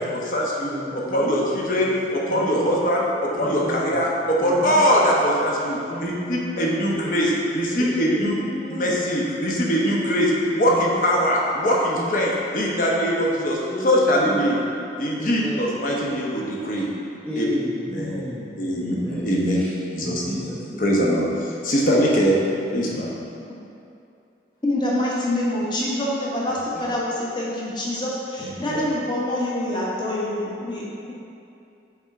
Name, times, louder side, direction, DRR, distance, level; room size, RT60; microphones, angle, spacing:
voice 1, 0.0-8.4 8.7-13.6 13.8-14.6 15.0-16.9 17.4-17.5 17.9-18.2 18.6-19.6 19.9-20.4 20.8-22.4 22.7-23.1 28.4-28.8, equal, 50° left, -3 dB, 1.0 m, -22 dB
voice 2, 0.6-1.4 1.8-1.9 2.3-2.8 3.4-4.0 4.4-4.9 5.9-7.1 7.8-9.1 9.5-10.4 10.6-11.4 11.9-13.1 13.7-14.7 15.2-15.6 17.3-20.8, equal, 10° left, -9 dB, 0.5 m, -33 dB
voice 3, 24.6-31.1, left 1 dB, 25° left, -6 dB, 1.0 m, -26 dB
7.1 x 3.7 x 4.5 m, 2.7 s
head